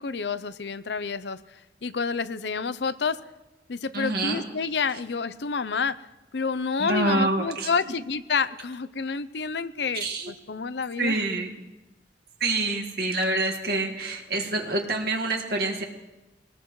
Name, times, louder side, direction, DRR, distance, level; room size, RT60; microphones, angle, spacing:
voice 1, 0.0-3.2 3.7-6.0 6.3-11.2, left 5 dB, 75° left, 14 dB, 0.6 m, -29 dB
voice 2, 3.9-4.4 6.8-7.7 10.0-10.3 11.0-11.6 12.4-15.8, right 2 dB, 60° right, 1 dB, 1.9 m, -26 dB
23.5 x 19.5 x 3.2 m, 1.1 s
head